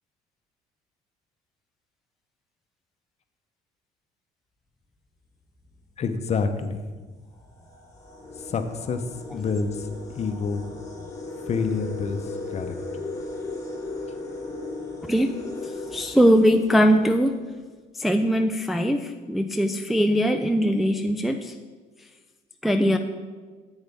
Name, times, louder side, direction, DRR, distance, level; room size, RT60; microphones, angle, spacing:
sound 1, 5.6-5.9 6.7-6.8 7.3-17.0, left 2 dB, 20° left, 1.5 m, -37 dB
voice 1, 6.0-6.8 8.5-9.0 9.3-9.9 10.2-10.6 11.5-12.7, left 5 dB, 40° left, 8 dB, 0.8 m, -27 dB
voice 2, 15.9-17.4 18.0-21.5 22.6-23.0, equal, ahead, 5 dB, 0.4 m, -21 dB
9.6 x 8.0 x 3.5 m, 1.4 s
cardioid pair, 110°, 17 cm